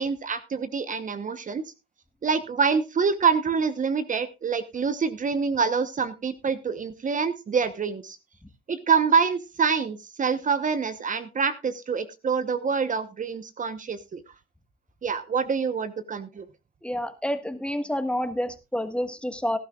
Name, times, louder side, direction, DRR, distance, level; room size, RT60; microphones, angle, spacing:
voice 1, 0.0-1.6 2.2-8.2 8.7-14.2 15.0-16.4, right 5 dB, 40° right, 12 dB, 1.0 m, -26 dB
voice 2, 16.8-19.6, equal, 5° left, 9 dB, 1.5 m, -28 dB
18.0 x 11.5 x 2.4 m, 0.26 s
cardioid pair, 90°, 20 cm